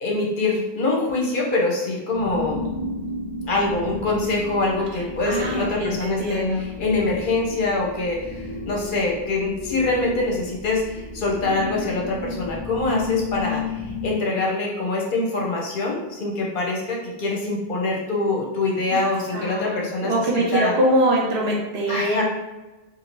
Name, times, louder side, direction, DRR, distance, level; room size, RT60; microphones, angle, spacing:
voice 1, 0.0-2.6 3.5-20.7 21.9-22.2, left 3 dB, 55° left, -2 dB, 0.9 m, -24 dB
sound 1, 2.1-14.1, left 3 dB, 15° right, 0.5 m, -33 dB
voice 2, 4.9-6.7 18.9-19.0 19.3-22.2, right 1 dB, 70° right, -3 dB, 1.0 m, -23 dB
2.7 x 2.7 x 3.0 m, 1.1 s
omnidirectional pair, 1.1 m